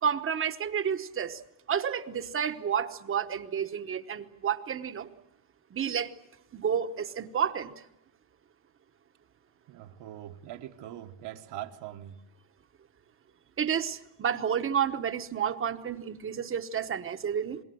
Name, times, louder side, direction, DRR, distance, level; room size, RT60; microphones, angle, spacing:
voice 1, 0.0-1.4 1.7-5.1 5.7-6.1 6.5-7.7 13.6-17.6, right 8 dB, 30° right, 1.1 m, -30 dB
voice 2, 9.7-12.2, right 12 dB, 65° right, 1.4 m, -42 dB
27.0 x 21.5 x 7.8 m
cardioid pair, 155°, 45 cm